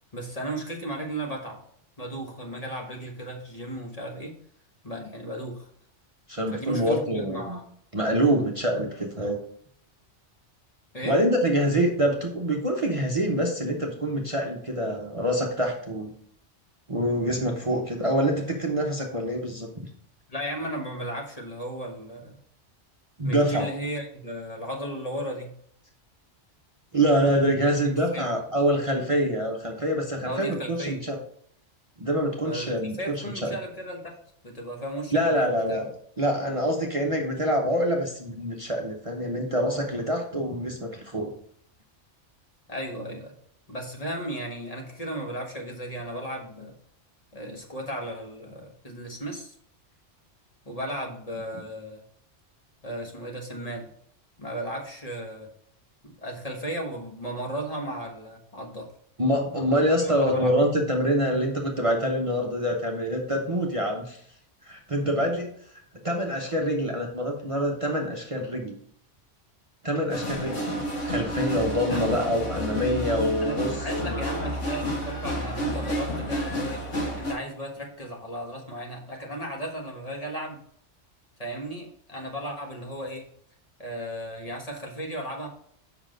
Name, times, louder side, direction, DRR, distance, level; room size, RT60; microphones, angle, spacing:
voice 1, 0.1-1.6 2.0-4.3 4.8-5.7 6.5-7.6 10.9-11.2 20.3-22.4 23.2-25.5 27.6-27.7 28.1-28.3 30.2-31.0 32.4-34.2 34.4-35.8 42.7-43.3 43.7-46.8 47.3-49.5 50.6-52.0 52.8-53.9 54.4-55.5 56.0-58.9 59.7-60.5 71.9-72.1 73.4-76.8 77.2-80.6 81.4-83.3 83.8-85.5, right 1 dB, 30° left, 0 dB, 1.4 m, -35 dB
voice 2, 6.3-7.6 7.9-9.4 11.0-16.1 16.9-19.9 23.2-23.7 26.9-31.2 32.0-33.6 35.1-35.9 36.2-41.3 59.2-64.2 64.6-65.5 66.0-68.8 69.8-70.7 71.0-73.7 74.0-74.2, equal, 30° right, 0 dB, 0.9 m, -25 dB
sound 1, 70.1-77.3, equal, 80° left, 2.3 m, -30 dB
7.2 x 5.8 x 3.9 m, 0.64 s
omnidirectional pair, 1.2 m